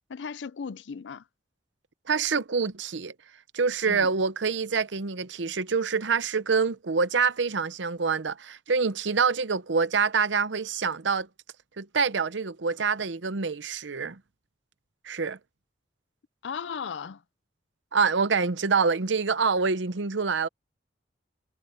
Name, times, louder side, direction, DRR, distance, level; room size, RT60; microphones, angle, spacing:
voice 1, 0.1-1.2 3.9-4.1 16.4-17.2, left 6 dB, 70° left, 0.5 m, -36 dB
voice 2, 2.1-3.1 3.5-11.3 11.8-14.2 15.0-15.4 17.9-20.5, right 5 dB, 75° right, 0.8 m, -26 dB
head